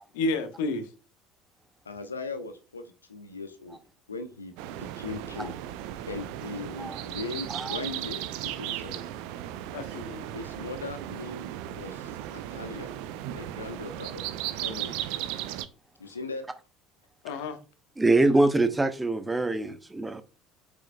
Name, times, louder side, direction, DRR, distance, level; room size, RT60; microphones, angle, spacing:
voice 1, 0.1-0.9 9.7-10.4 17.2-17.6, left 2 dB, 65° left, 1.2 m, -30 dB
voice 2, 1.8-2.8 3.1-3.8 4.1-5.5 6.1-9.0 10.3-12.9 13.3-14.3 14.6-14.9 16.0-16.4, left 3 dB, 80° left, 0.9 m, -39 dB
sound 1, 4.6-15.7, right 12 dB, 60° right, 0.5 m, -36 dB
voice 3, 18.0-20.2, right 2 dB, 15° right, 0.8 m, -24 dB
8.3 x 6.5 x 2.2 m
figure-of-eight pair, 60°, 0 cm